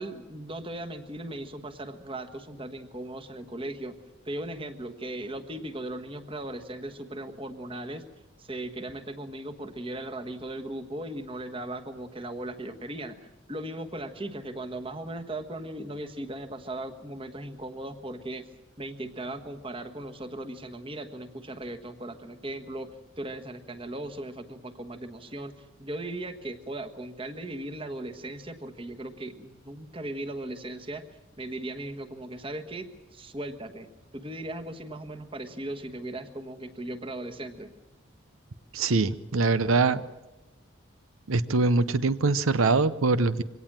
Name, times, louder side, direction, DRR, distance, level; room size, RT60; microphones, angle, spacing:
voice 1, 0.0-4.0 4.2-8.0 8.4-18.5 18.8-31.0 31.4-32.9 33.1-37.7, right 1 dB, 25° right, 7 dB, 1.3 m, -38 dB
voice 2, 38.7-40.0 41.3-43.4, right 3 dB, 90° right, 14 dB, 0.8 m, -23 dB
24.0 x 18.0 x 7.4 m, 1.1 s
head